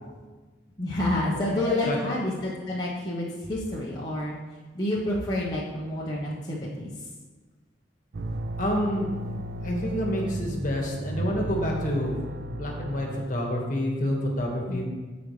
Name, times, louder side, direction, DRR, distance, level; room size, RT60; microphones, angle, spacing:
voice 1, 0.8-4.4 4.7-6.9 14.7-14.8, left 1 dB, 20° left, -6 dB, 1.0 m, -29 dB
voice 2, 1.3-2.0 8.6-9.3 9.6-14.8, equal, 45° left, 0 dB, 1.6 m, -28 dB
sound 1, 8.1-13.2, right 1 dB, 55° right, 0.4 m, -34 dB
15.0 x 5.2 x 3.2 m, 1.3 s
head